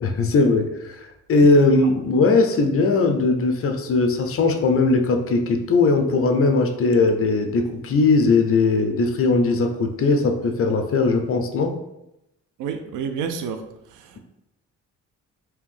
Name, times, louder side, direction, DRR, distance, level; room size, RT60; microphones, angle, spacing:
voice 1, 0.0-11.8, left 3 dB, 45° left, 6 dB, 0.6 m, -19 dB
voice 2, 12.6-13.6, right 6 dB, 85° right, 8 dB, 0.5 m, -28 dB
3.5 x 2.8 x 3.5 m, 0.88 s
cardioid pair, 90°, 30 cm